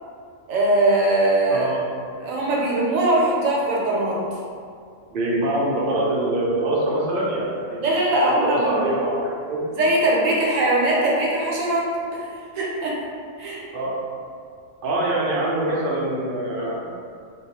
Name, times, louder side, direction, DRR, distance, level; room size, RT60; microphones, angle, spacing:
voice 1, 0.5-1.7 2.2-4.2 7.8-8.9 9.7-11.9 12.5-13.0 13.4-13.6, right 1 dB, 85° right, -4 dB, 1.0 m, -21 dB
voice 2, 1.5-1.9 5.1-9.7 13.7-14.0 14.8-16.9, right 1 dB, 60° right, -5 dB, 0.5 m, -24 dB
2.3 x 2.2 x 2.9 m, 2.3 s
omnidirectional pair, 1.3 m